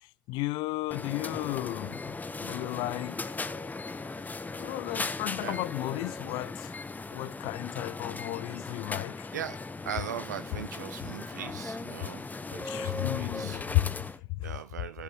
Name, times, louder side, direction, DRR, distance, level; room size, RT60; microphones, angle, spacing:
voice 1, 0.3-2.2 2.4-3.4 4.6-6.7 7.1-9.3 12.6-14.5, left 19 dB, 55° left, 0.6 m, -33 dB
sound 1, 0.9-14.2, left 3 dB, 15° left, 1.0 m, -38 dB
voice 2, 9.9-13.6 14.4-15.0, right 10 dB, 75° right, 0.7 m, -40 dB
12.5 x 9.2 x 4.5 m
figure-of-eight pair, 55°, 9 cm